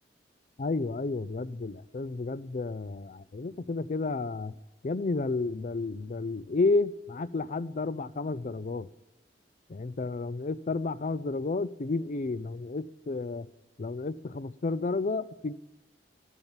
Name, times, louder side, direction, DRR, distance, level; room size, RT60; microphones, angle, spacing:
voice 1, 0.6-4.5 4.8-8.9 9.7-13.5 13.8-15.5, left 3 dB, 45° left, 0.5 m, -31 dB
14.0 x 12.0 x 7.3 m
head